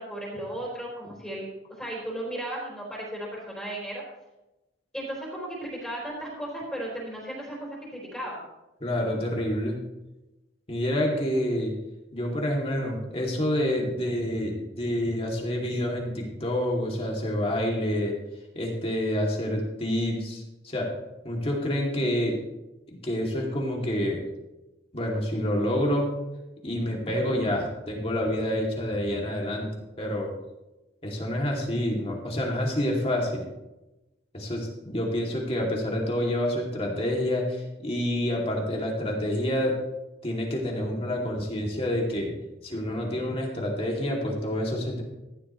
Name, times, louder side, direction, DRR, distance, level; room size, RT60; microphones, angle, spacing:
voice 1, 0.0-1.5 1.8-4.0 4.9-8.4, right 1 dB, 5° left, -5 dB, 4.2 m, -35 dB
voice 2, 8.8-9.8 10.7-11.7 12.1-18.1 18.5-20.9 21.2-22.4 22.9-24.2 24.9-26.1 26.6-30.3 31.0-33.4 34.3-39.7 40.2-42.4 42.6-45.0, left 1 dB, 30° left, -1 dB, 2.6 m, -28 dB
15.0 x 11.5 x 3.2 m, 0.99 s
head